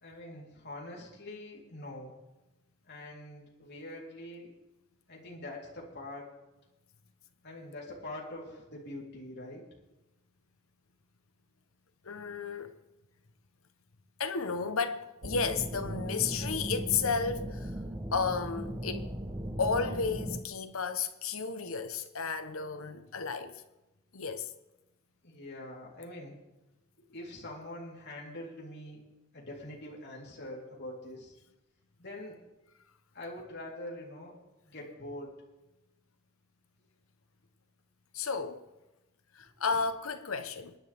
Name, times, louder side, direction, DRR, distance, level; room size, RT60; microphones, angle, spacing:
voice 1, 0.0-2.1 2.9-4.5 5.1-6.3 7.4-9.6 25.2-26.4 27.1-29.0 29.3-31.3 32.0-32.4 33.1-34.3 34.7-35.3, left 1 dB, 50° left, 3.7 m, -44 dB
voice 2, 12.0-12.7 14.2-17.7 18.1-19.1 19.6-23.6 24.1-24.5 38.1-38.6 39.3-40.7, left 5 dB, 80° left, 1.0 m, -33 dB
sound 1, 15.2-20.4, equal, 20° right, 1.0 m, -37 dB
26.0 x 10.5 x 3.6 m
head